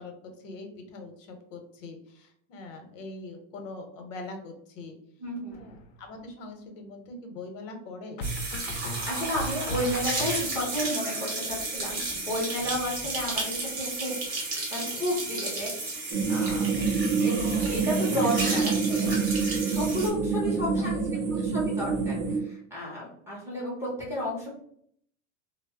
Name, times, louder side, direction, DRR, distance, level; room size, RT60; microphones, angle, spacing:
voice 1, 0.0-5.0 5.5-8.2 12.4-12.6 16.7-17.4 20.2-21.0 21.4-21.5, left 2 dB, 80° left, 5 dB, 0.8 m, -43 dB
voice 2, 5.2-5.6 8.7-16.8 17.2-19.1 19.7-21.0 21.4-24.5, equal, 5° right, -7 dB, 0.4 m, -32 dB
sound 1, 5.5-6.1 8.2-10.8, right 1 dB, 55° left, 0.5 m, -37 dB
sound 2, 8.2-20.1, right 2 dB, 25° right, 0.8 m, -33 dB
sound 3, 16.1-22.4, right 5 dB, 75° right, 0.7 m, -27 dB
2.0 x 2.0 x 3.4 m, 0.65 s
supercardioid pair, 165°, 37 cm